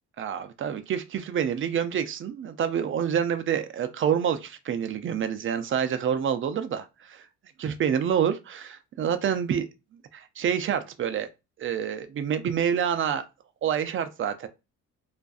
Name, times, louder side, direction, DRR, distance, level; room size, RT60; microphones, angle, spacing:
voice 1, 0.2-7.2 7.6-9.7 10.1-11.3 11.6-13.2 13.6-14.5, right 8 dB, 45° right, 0.4 m, -27 dB
2.5 x 2.3 x 2.3 m
cardioid pair, 90°, 30 cm